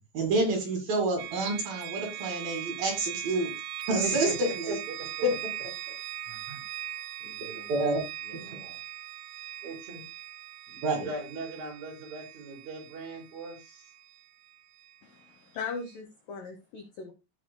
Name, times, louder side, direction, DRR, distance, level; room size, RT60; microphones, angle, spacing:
voice 1, 0.1-3.5 3.9-4.8 5.2-5.3 7.7-8.0 8.5-8.6 10.8-11.1, right 2 dB, 55° right, 2 dB, 3.5 m, -28 dB
sound 1, 1.2-15.0, right 13 dB, 85° right, 2.2 m, -40 dB
voice 2, 4.0-5.1 6.3-6.7 7.2-7.9 8.2-8.8 9.6-10.0 10.7-13.9, right 3 dB, 40° right, -1 dB, 5.5 m, -40 dB
voice 3, 15.0-17.1, left 5 dB, 75° left, 6 dB, 2.0 m, -39 dB
16.0 x 6.3 x 2.2 m, 0.25 s
omnidirectional pair, 5.3 m